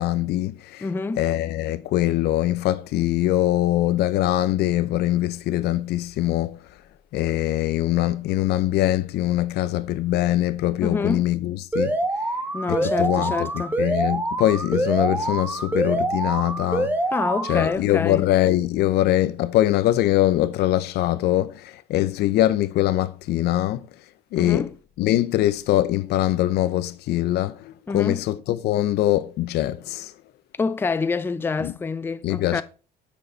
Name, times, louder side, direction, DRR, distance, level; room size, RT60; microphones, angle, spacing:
voice 1, 0.0-0.9 1.2-6.6 7.1-11.9 12.7-16.9 17.5-23.9 24.3-24.7 25.0-30.1 31.6-31.7 32.2-32.6, left 14 dB, 75° left, 0.5 m, -22 dB
voice 2, 0.8-1.2 10.8-11.3 12.5-13.8 17.1-18.3 24.4-24.7 27.9-28.2 30.6-32.6, left 4 dB, 15° left, 0.4 m, -27 dB
Alarm, 11.7-17.7, right 1 dB, 10° right, 1.0 m, -25 dB
6.3 x 5.5 x 3.9 m
cardioid pair, 110°, 17 cm